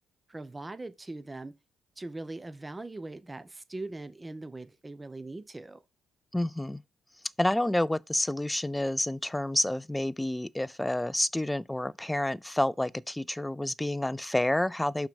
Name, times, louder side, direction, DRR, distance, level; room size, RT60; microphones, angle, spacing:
voice 1, 0.3-1.5 2.0-5.8, right 2 dB, 20° right, 0.8 m, -41 dB
voice 2, 6.3-6.8 7.4-15.1, left 1 dB, 10° left, 0.3 m, -29 dB
5.8 x 4.4 x 5.3 m
cardioid pair, 90°, 0 cm